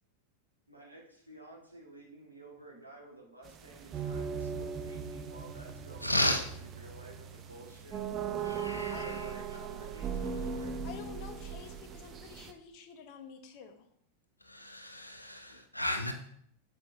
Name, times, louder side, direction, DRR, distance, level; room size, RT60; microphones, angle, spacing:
voice 1, 0.7-8.0 8.5-10.7 14.6-14.7 15.5-15.7, right 1 dB, 90° right, -2 dB, 2.0 m, -52 dB
sound 1, 3.4-12.5, right 6 dB, 30° right, 0.8 m, -39 dB
voice 2, 6.0-6.4 8.4-9.3 14.5-16.1, left 1 dB, 85° left, 6 dB, 0.9 m, -33 dB
voice 3, 10.8-13.8, left 7 dB, 45° left, 7 dB, 1.1 m, -49 dB
7.5 x 7.5 x 2.8 m, 0.66 s
figure-of-eight pair, 90°, 0 cm